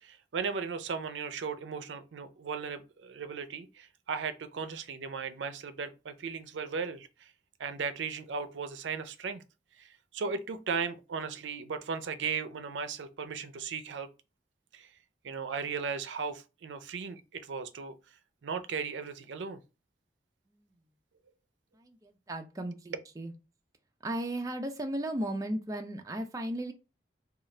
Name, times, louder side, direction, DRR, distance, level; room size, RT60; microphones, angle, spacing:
voice 1, 0.0-7.3 7.6-9.4 9.8-14.1 14.7-14.9 15.2-17.9 18.4-19.6, right 5 dB, 80° right, 0.4 m, -36 dB
voice 2, 21.7-23.3 24.0-26.7, right 1 dB, 20° right, 0.4 m, -35 dB
3.7 x 2.3 x 3.2 m
head